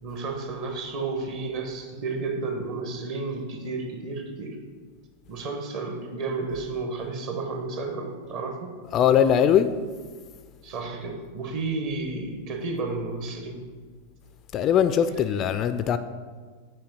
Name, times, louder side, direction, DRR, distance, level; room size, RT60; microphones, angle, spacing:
voice 1, 0.0-4.6 5.3-8.8 10.6-13.6, right 3 dB, 45° right, 4 dB, 1.2 m, -32 dB
voice 2, 8.9-9.7 14.5-16.0, left 9 dB, 30° left, 12 dB, 0.3 m, -20 dB
7.6 x 4.6 x 5.3 m, 1.5 s
figure-of-eight pair, 90°, 0 cm